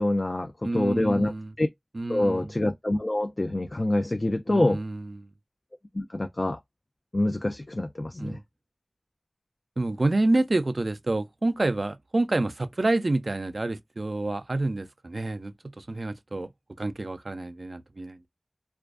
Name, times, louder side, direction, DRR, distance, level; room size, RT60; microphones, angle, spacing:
voice 1, 0.0-1.3 1.6-1.7 2.1-4.8 5.9-6.6 7.1-8.4, left 1 dB, 55° left, 0.3 m, -26 dB
voice 2, 0.6-1.5 1.9-2.5 4.5-5.3 8.2-8.4 9.8-16.5 16.8-18.2, right 2 dB, 75° right, 0.3 m, -28 dB
2.4 x 2.2 x 2.3 m
wide cardioid pair, 40°, 0 cm